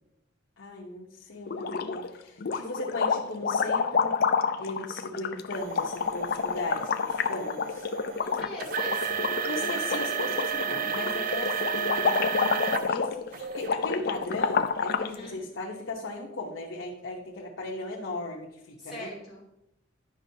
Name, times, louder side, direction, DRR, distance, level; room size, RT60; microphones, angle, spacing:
voice 1, 0.6-4.2 4.6-7.9 9.4-19.1, left 2 dB, 80° left, -3 dB, 1.0 m, -37 dB
sound 1, 1.5-2.1 2.4-15.1, left 5 dB, 50° left, 0.4 m, -29 dB
sound 2, 5.5-12.9 13.3-13.7 14.3-14.4 15.1-15.2, right 8 dB, 45° right, 0.4 m, -33 dB
voice 2, 8.1-9.2 15.0-15.4 18.8-19.4, left 1 dB, ahead, -9 dB, 2.7 m, -42 dB
10.5 x 5.4 x 2.8 m, 0.84 s
head